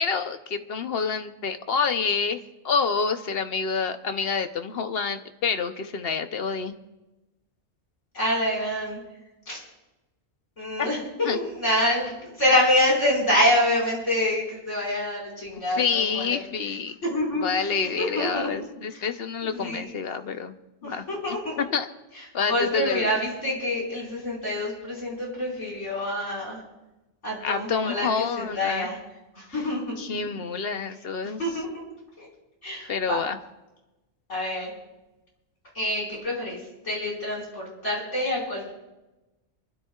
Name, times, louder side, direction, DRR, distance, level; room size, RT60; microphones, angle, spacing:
voice 1, 0.0-6.7 10.8-10.9 11.2-11.4 15.8-17.0 17.4-20.5 20.8-21.9 22.3-23.1 27.4-28.9 30.0-31.4 32.9-33.4, left 5 dB, 60° left, 8 dB, 1.0 m, -28 dB
voice 2, 8.1-9.0 9.5-9.6 10.6-16.4 17.1-18.5 18.9-19.1 19.4-20.0 20.8-21.6 22.2-26.6 27.2-29.0 29.4-30.0 31.4-31.8 32.2-32.3 32.6-33.2 34.3-34.7 35.7-36.6 36.8-38.7, left 1 dB, 85° left, -3 dB, 5.5 m, -26 dB
27.0 x 13.0 x 2.4 m, 1.0 s
omnidirectional pair, 1.2 m